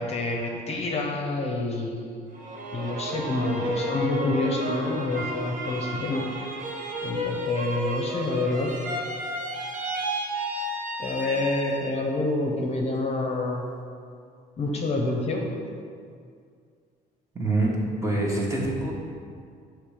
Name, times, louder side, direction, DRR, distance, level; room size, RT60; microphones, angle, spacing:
voice 1, 0.0-1.9 2.7-6.2 7.0-8.7 11.0-13.6 14.6-15.5, left 2 dB, 40° left, 0 dB, 0.7 m, -27 dB
sound 1, 2.3-12.1 12.5-13.2, right 1 dB, 50° right, 0.9 m, -32 dB
voice 2, 17.3-17.7 18.0-18.9, right 2 dB, 20° right, -4 dB, 1.2 m, -25 dB
6.5 x 3.2 x 4.9 m, 2.2 s
cardioid pair, 110°, 17 cm